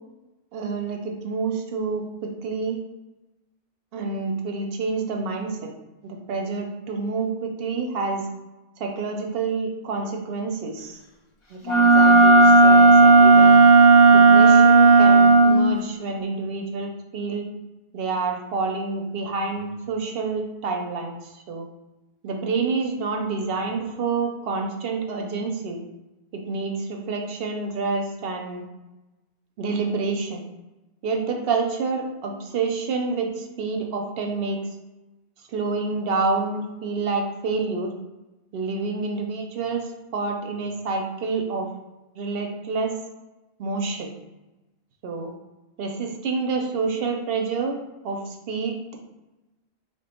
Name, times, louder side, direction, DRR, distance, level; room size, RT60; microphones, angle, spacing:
voice 1, 0.5-2.8 3.9-5.7 6.0-8.2 8.8-11.0 11.5-13.6 14.1-17.5 17.9-21.7 22.2-25.8 26.3-28.6 29.6-30.4 31.0-34.6 35.5-37.9 38.5-41.7 42.2-42.9 43.6-44.1 45.0-45.3 45.8-47.8 48.0-49.0, right 4 dB, 70° right, 2 dB, 0.7 m, -28 dB
Wind instrument woodwind instrument, 11.6-15.7, right 3 dB, 35° left, 0.5 m, -12 dB
3.2 x 2.2 x 4.2 m, 1.0 s
omnidirectional pair, 1.1 m